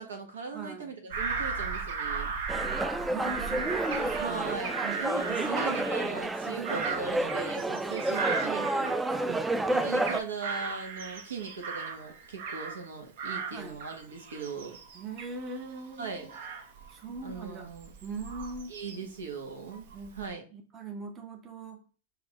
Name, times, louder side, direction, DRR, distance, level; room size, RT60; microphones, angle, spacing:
voice 1, 0.0-2.3 4.2-9.0 9.7-14.8 16.0-16.3 17.2-17.9 18.7-19.8 20.2-20.4, right 5 dB, 85° right, 3 dB, 1.2 m, -39 dB
voice 2, 0.5-0.9 3.1-4.6 5.3-6.0 6.5-6.9 9.0-9.5 13.5-13.8 14.9-16.3 16.9-17.7 18.0-18.8 19.9-20.2 20.5-21.8, right 3 dB, 25° right, 4 dB, 0.8 m, -40 dB
Bird vocalization bird call bird song / Crow, 1.1-9.4 9.8-12.9 13.2-19.2 19.7-20.3, right 5 dB, 65° right, 0.8 m, -37 dB
Ambiente - churrasqueria, 2.5-10.2, right 2 dB, 10° right, 0.4 m, -30 dB
4.8 x 2.8 x 3.6 m, 0.36 s
hypercardioid pair, 115°, 0 cm